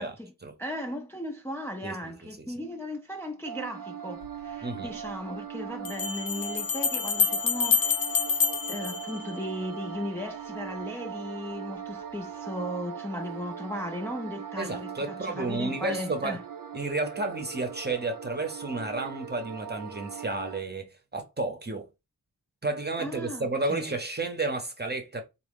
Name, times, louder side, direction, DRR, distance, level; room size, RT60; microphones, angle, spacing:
voice 1, 0.0-0.3 0.6-16.4 23.0-24.0, left 1 dB, 5° left, 0.4 m, -37 dB
sound 1, 3.4-20.6, right 8 dB, 60° right, 0.6 m, -40 dB
sound 2, 4.2-4.3 5.8-9.8, left 6 dB, 60° left, 0.5 m, -27 dB
voice 2, 14.6-16.4 16.7-21.9 22.6-25.2, right 2 dB, 25° right, 0.8 m, -32 dB
3.7 x 2.1 x 3.5 m
wide cardioid pair, 70°, 38 cm